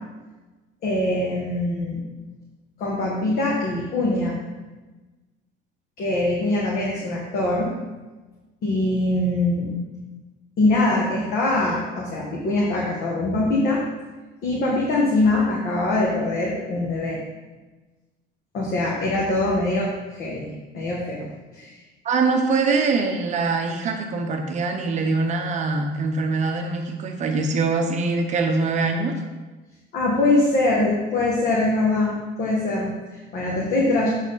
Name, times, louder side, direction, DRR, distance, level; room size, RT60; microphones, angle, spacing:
voice 1, 0.8-2.0 2.8-4.4 6.0-7.7 8.6-9.7 10.6-13.8 14.4-17.2 18.5-20.5 20.7-21.3 21.5-21.7 29.9-34.1, left 2 dB, 50° left, -4 dB, 1.4 m, -23 dB
voice 2, 22.0-29.1, right 4 dB, 35° right, 3 dB, 0.7 m, -23 dB
7.4 x 5.9 x 4.0 m, 1.2 s
cardioid pair, 165°, 21 cm